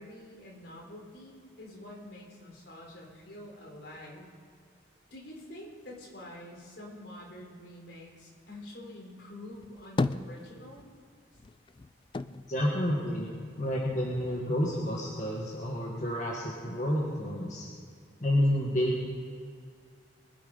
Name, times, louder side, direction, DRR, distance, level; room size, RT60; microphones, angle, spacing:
voice 1, 0.0-4.3 5.1-10.8, left 1 dB, 65° left, -1 dB, 3.9 m, -47 dB
sound 1, 9.5-11.0 11.3-13.7 14.1-15.0, left 3 dB, 25° left, 0.3 m, -35 dB
voice 2, 12.5-17.6 18.2-19.0, equal, 40° left, -4 dB, 1.8 m, -29 dB
23.5 x 8.5 x 5.5 m, 2.1 s
head